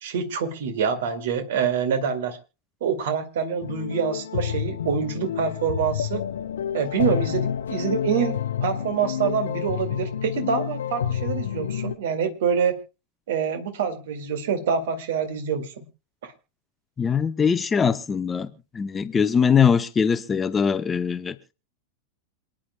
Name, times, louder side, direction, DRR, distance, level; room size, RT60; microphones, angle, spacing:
voice 1, 0.0-2.4 2.8-6.2 6.7-12.8 13.3-15.9 16.2-16.3, right 7 dB, 55° right, 9 dB, 2.1 m, -26 dB
sound 1, 3.6-11.9, left 9 dB, 65° left, 0.7 m, -29 dB
voice 2, 17.0-18.5 18.7-21.4, left 6 dB, 20° left, 13 dB, 0.8 m, -21 dB
27.0 x 10.0 x 2.2 m, 0.30 s
figure-of-eight pair, 90°, 0 cm